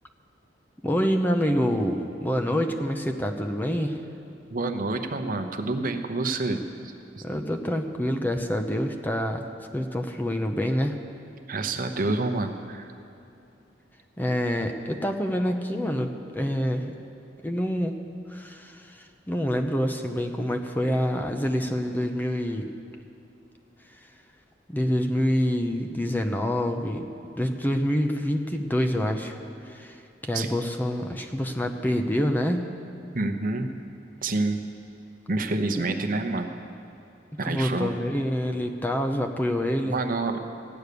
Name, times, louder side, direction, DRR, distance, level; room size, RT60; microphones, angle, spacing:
voice 1, 0.8-4.0 7.2-9.5 9.7-11.0 14.2-16.9 17.4-18.0 18.3-22.7 24.7-29.4 29.7-30.0 30.2-32.6 37.4-40.0, equal, 10° left, 4 dB, 0.6 m, -26 dB
voice 2, 4.5-7.2 11.5-12.9 30.3-30.5 33.1-33.7 34.2-34.6 35.3-36.5 37.4-38.0 39.8-40.4, right 2 dB, 50° right, 6 dB, 0.8 m, -28 dB
14.5 x 9.5 x 6.8 m, 2.7 s
head